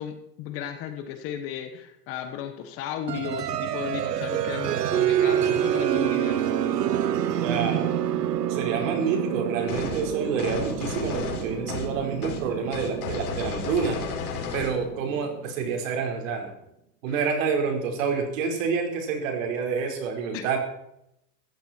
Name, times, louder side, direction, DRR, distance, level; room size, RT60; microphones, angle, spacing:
voice 1, 0.0-6.6 17.1-17.2 20.3-20.4, left 9 dB, 30° left, 7 dB, 1.3 m, -35 dB
sound 1, 3.1-15.6, right 10 dB, 90° right, 1.4 m, -28 dB
voice 2, 7.4-7.9 8.5-14.0 14.5-16.5 17.0-20.6, right 5 dB, 55° right, 3 dB, 5.0 m, -28 dB
sound 2, 9.7-10.0 10.4-11.9 12.2-12.4 12.7-14.7, left 6 dB, 65° left, 4.6 m, -33 dB
17.0 x 15.0 x 4.6 m, 0.80 s
supercardioid pair, 160°, 47 cm